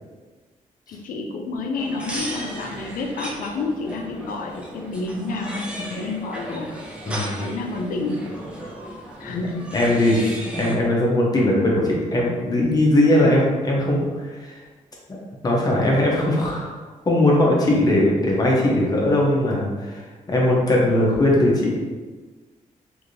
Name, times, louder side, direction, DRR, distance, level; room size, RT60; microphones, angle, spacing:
voice 1, 0.9-6.7 7.4-8.4 9.2-9.8 10.2-10.3, left 3 dB, 90° left, 2 dB, 0.5 m, -29 dB
sound 1, 1.7-10.7, right 1 dB, 10° right, 0.4 m, -35 dB
voice 2, 9.7-14.6 15.1-16.7 17.0-21.8, left 1 dB, 30° left, -3 dB, 0.7 m, -20 dB
3.2 x 2.6 x 2.6 m, 1.3 s
wide cardioid pair, 160°, 14 cm